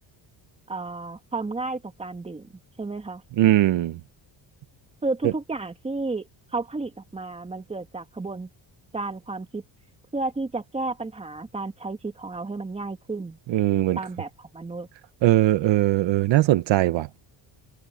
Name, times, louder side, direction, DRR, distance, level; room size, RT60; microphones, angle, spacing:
voice 1, 0.7-2.5 2.8-3.2 5.0-8.5 8.9-9.6 10.1-13.4 13.7-14.9, right 3 dB, 15° right, 2.1 m, -32 dB
voice 2, 3.4-4.0 13.5-14.0 15.2-17.2, right 14 dB, 70° right, 1.0 m, -20 dB
cardioid pair, 165°, 46 cm